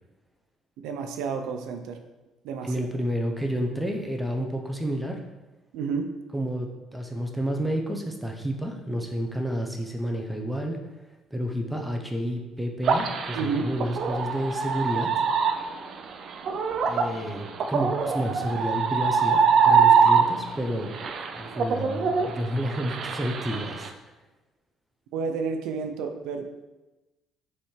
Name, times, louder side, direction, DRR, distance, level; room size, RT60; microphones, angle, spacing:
voice 1, 0.8-2.0 2.4-2.9 5.7-6.1 13.3-13.7 25.1-26.6, right 5 dB, 90° right, 6 dB, 0.6 m, -30 dB
voice 2, 2.6-5.2 6.3-10.8 11.3-15.2 16.9-20.9 21.3-23.9, equal, 5° right, 2 dB, 0.7 m, -30 dB
sound 1, 12.8-20.6 20.9-23.9, right 6 dB, 45° right, 0.5 m, -23 dB
7.4 x 3.4 x 4.5 m, 1.1 s
cardioid pair, 155°, 0 cm